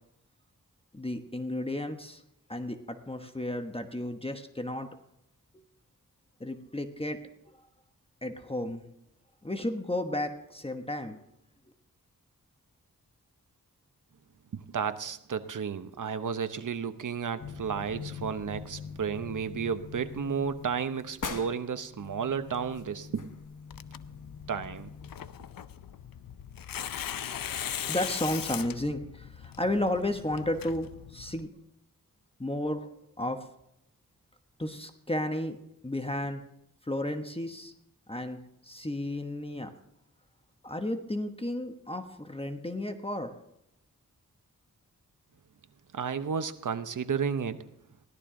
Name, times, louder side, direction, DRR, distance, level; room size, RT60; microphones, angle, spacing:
voice 1, 0.9-2.2 2.5-4.9 6.4-7.2 8.2-8.8 9.4-11.2 27.3-31.5 32.4-32.9 33.2-33.4 34.6-35.6 35.8-36.4 36.9-37.7 38.1-39.7 40.6-43.3, left 1 dB, 15° left, 6 dB, 1.1 m, -33 dB
voice 2, 14.5-23.3 24.5-24.9 45.9-47.6, right 6 dB, 65° right, 11 dB, 0.9 m, -32 dB
sound 1, 17.4-25.1, left 5 dB, 65° left, 1.3 m, -43 dB
Tearing, 23.7-31.5, left 9 dB, 90° left, 0.6 m, -39 dB
17.0 x 12.0 x 3.8 m, 0.79 s
wide cardioid pair, 65°, 33 cm